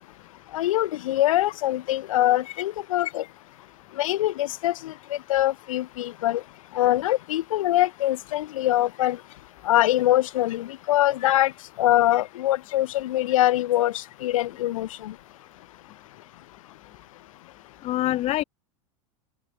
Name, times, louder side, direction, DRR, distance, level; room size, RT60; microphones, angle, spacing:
voice 1, 0.5-3.2 4.0-6.4 6.7-9.2 9.6-11.5 11.8-15.1, left 14 dB, 80° left, 1.2 m, -23 dB
voice 2, 17.8-18.4, left 15 dB, 40° left, 0.8 m, -26 dB
open air
hypercardioid pair, 105°, 17 cm